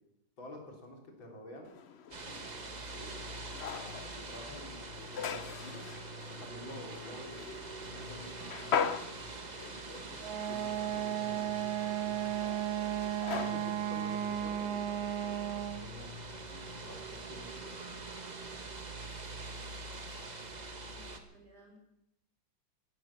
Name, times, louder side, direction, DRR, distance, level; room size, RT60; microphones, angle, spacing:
voice 1, 0.4-1.7 2.2-3.3 4.1-4.8 5.1-5.9 6.3-7.4 7.8-9.0 9.3-11.5 12.0-12.6 13.3-16.1 16.9-18.0, left 1 dB, 80° left, 2 dB, 4.1 m, -50 dB
sound 1, 1.7-15.4, left 7 dB, 55° left, 0.7 m, -42 dB
sound 2, 2.1-21.2, right 2 dB, 25° right, 1.2 m, -44 dB
Wind instrument woodwind instrument, 10.2-15.9, right 11 dB, 90° right, 1.8 m, -34 dB
voice 2, 16.5-16.8 20.9-21.8, right 1 dB, 55° right, 1 dB, 4.7 m, -58 dB
14.5 x 12.5 x 7.2 m, 0.82 s
omnidirectional pair, 2.1 m